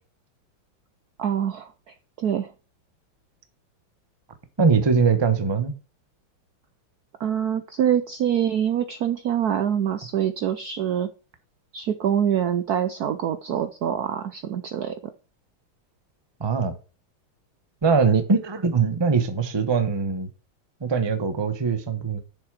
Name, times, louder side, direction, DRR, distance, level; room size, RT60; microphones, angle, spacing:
voice 1, 1.2-1.7 2.2-2.5 7.2-11.1 11.7-14.9, right 9 dB, 65° right, 0.9 m, -25 dB
voice 2, 4.6-5.7 16.4-16.7 17.8-20.3 20.8-22.2, right 5 dB, 20° right, 0.6 m, -22 dB
7.2 x 6.6 x 6.2 m
omnidirectional pair, 2.4 m